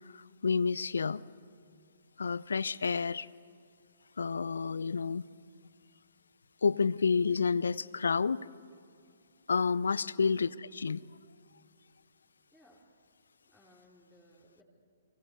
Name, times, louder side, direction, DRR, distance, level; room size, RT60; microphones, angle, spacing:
voice 1, 0.1-1.2 2.2-3.3 4.2-5.3 6.6-8.4 9.5-11.0, left 5 dB, 70° left, 21 dB, 0.6 m, -29 dB
voice 2, 12.5-12.9 13.5-14.6, equal, ahead, -4 dB, 3.5 m, -62 dB
30.0 x 23.5 x 8.2 m, 2.4 s
figure-of-eight pair, 125°, 0 cm